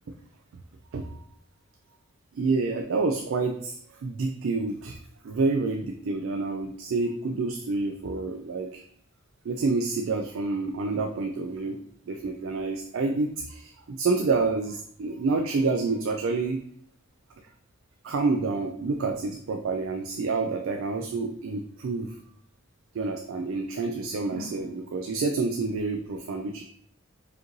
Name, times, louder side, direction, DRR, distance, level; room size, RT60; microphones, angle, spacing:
voice 1, 2.3-3.8 4.0-5.0 5.2-8.8 9.4-11.8 12.0-16.6 18.0-22.1 22.9-26.6, right 3 dB, 70° right, 4 dB, 0.4 m, -28 dB
4.8 x 3.0 x 2.6 m, 0.66 s
head